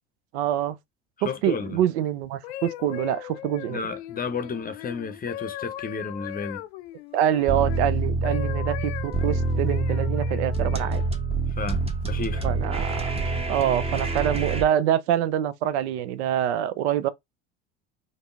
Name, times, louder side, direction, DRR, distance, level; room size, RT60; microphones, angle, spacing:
voice 1, 0.3-0.8 1.2-3.8 7.1-11.0 12.4-13.1 13.5-17.1, right 11 dB, 70° right, 0.6 m, -25 dB
voice 2, 1.2-1.8 3.7-6.6 11.5-12.5, left 5 dB, 25° left, 0.7 m, -32 dB
sound 1, 2.2-7.8 8.2-11.1 11.8-12.0, left 13 dB, 70° left, 0.5 m, -39 dB
sound 2, 7.5-14.6, right 3 dB, 15° right, 0.8 m, -26 dB
5.2 x 2.0 x 2.4 m
hypercardioid pair, 70°, 34 cm